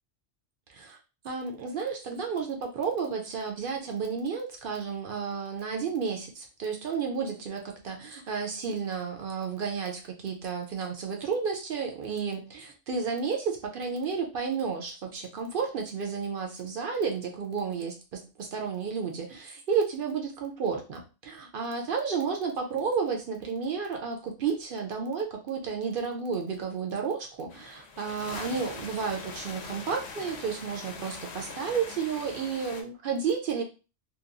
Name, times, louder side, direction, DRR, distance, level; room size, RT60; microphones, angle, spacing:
voice 1, 1.2-33.6, right 6 dB, 60° right, 2 dB, 0.6 m, -32 dB
sound 1, 27.5-32.8, left 4 dB, 70° left, 0.8 m, -42 dB
2.8 x 2.2 x 2.4 m, 0.31 s
omnidirectional pair, 1.3 m